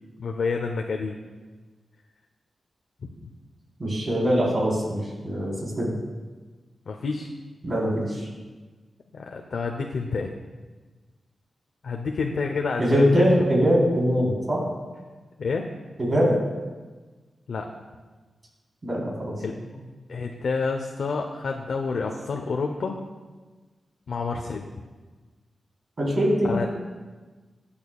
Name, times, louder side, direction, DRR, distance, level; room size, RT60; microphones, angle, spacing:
voice 1, 0.2-1.2 3.2-3.3 6.9-7.3 9.1-10.3 11.8-13.3 15.4-15.7 17.5-17.7 19.4-19.6 20.1-23.0 24.1-24.7 26.5-26.7, left 4 dB, 75° left, 2 dB, 0.8 m, -28 dB
voice 2, 3.8-5.9 7.6-8.3 12.8-14.7 16.0-16.4 18.8-19.3 26.0-26.5, equal, 40° right, -5 dB, 3.9 m, -22 dB
21.0 x 8.7 x 2.4 m, 1.3 s
wide cardioid pair, 90°, 0 cm